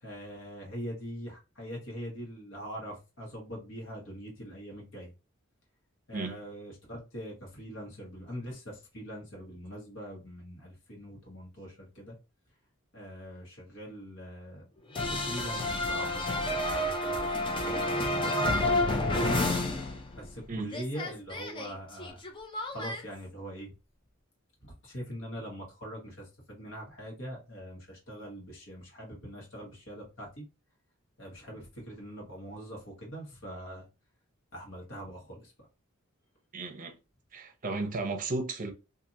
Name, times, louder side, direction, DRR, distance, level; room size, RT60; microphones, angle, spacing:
voice 1, 0.0-5.1 6.1-12.2 12.9-19.6 20.1-22.3 22.7-23.7 24.6-30.4 31.2-33.9 34.5-35.5, equal, 65° left, 1.3 m, -43 dB
sound 1, 14.9-20.4 20.7-23.0, left 1 dB, 25° left, 0.4 m, -30 dB
voice 2, 36.5-36.9 37.3-38.7, right 3 dB, 40° right, 0.6 m, -34 dB
2.8 x 2.5 x 2.5 m
head